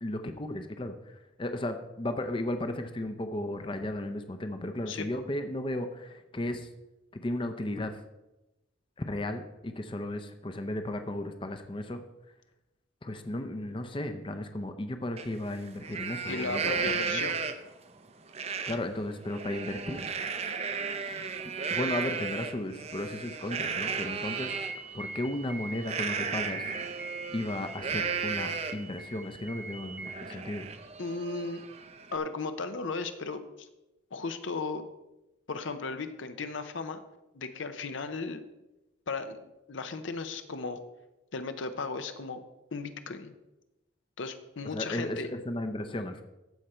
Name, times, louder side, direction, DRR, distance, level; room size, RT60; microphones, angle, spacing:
voice 1, 0.0-0.9 1.4-6.7 7.1-8.0 9.0-12.0 13.0-16.7 17.1-17.2 18.7-20.1 21.7-24.6 24.9-26.6 27.3-30.7 44.7-46.2, left 1 dB, 25° left, 7 dB, 0.6 m, -35 dB
Livestock farm animals working animals, 15.2-15.3 15.7-17.8 18.3-18.8 19.2-24.7 25.8-28.9 29.4-29.5 29.8-32.2, right 6 dB, 35° right, 0.6 m, -34 dB
voice 2, 16.3-17.4 30.3-30.4 31.0-31.6 32.1-33.7 34.1-34.8 35.5-37.0 37.3-38.4 39.1-40.8 41.3-42.4 42.7-43.3 44.2-45.3, left 4 dB, 80° left, 9 dB, 0.7 m, -36 dB
sound 1, 24.2-30.1, right 2 dB, 5° right, 1.0 m, -43 dB
14.5 x 5.0 x 4.3 m, 0.98 s
head